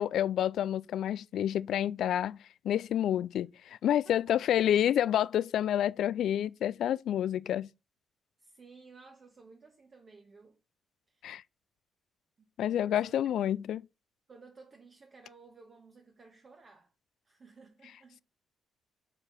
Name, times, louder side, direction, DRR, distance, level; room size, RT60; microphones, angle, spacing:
voice 1, 0.0-2.4 2.6-7.7 11.2-11.4 12.6-13.8, left 11 dB, 75° left, 0.4 m, -29 dB
voice 2, 4.0-4.4 8.4-10.6 11.1-11.3 12.4-12.5 12.8-13.6 14.3-16.9 17.2-18.2, right 4 dB, 40° right, 1.6 m, -56 dB
7.5 x 4.6 x 6.4 m
cardioid pair, 90°, 0 cm